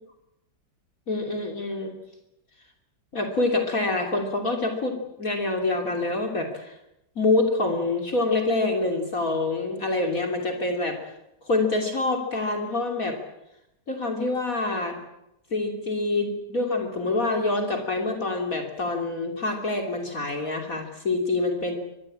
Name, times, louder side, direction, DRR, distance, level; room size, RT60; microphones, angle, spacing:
voice 1, 1.1-2.0 3.1-6.7 7.2-11.0 11.4-13.2 13.9-15.0 15.5-21.7, left 2 dB, 50° left, 3 dB, 3.3 m, -26 dB
24.5 x 21.0 x 8.7 m, 0.83 s
omnidirectional pair, 1.9 m